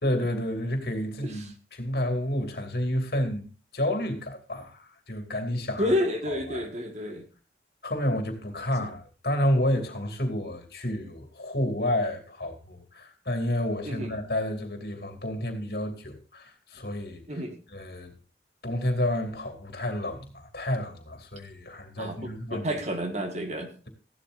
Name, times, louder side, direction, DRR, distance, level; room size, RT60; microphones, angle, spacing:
voice 1, 0.0-3.5 3.7-5.9 6.3-6.7 7.8-17.4 17.7-18.1 18.6-22.7, left 1 dB, 60° left, 2.7 m, -30 dB
voice 2, 5.8-7.2 8.8-8.9 13.8-14.1 17.3-17.5 22.0-23.7, left 1 dB, 40° right, 1.7 m, -30 dB
15.5 x 12.0 x 2.6 m
head